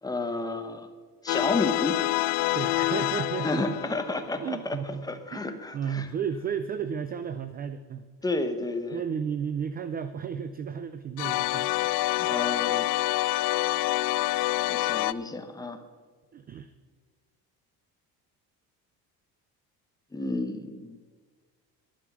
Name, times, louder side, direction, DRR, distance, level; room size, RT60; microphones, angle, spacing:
voice 1, 0.0-0.9 1.2-2.0 3.4-4.8 5.0-6.1 8.2-9.0 12.2-12.9 14.7-15.8 20.1-21.0, left 2 dB, 10° left, 7 dB, 0.8 m, -31 dB
sound 1, 1.3-4.4 11.2-15.1, left 18 dB, 85° left, 0.5 m, -27 dB
voice 2, 2.5-3.7 4.4-5.1 5.3-8.0 8.9-12.2 16.3-16.7, right 7 dB, 25° right, 12 dB, 0.3 m, -33 dB
11.5 x 11.5 x 6.0 m, 1.5 s
cardioid pair, 165°, 39 cm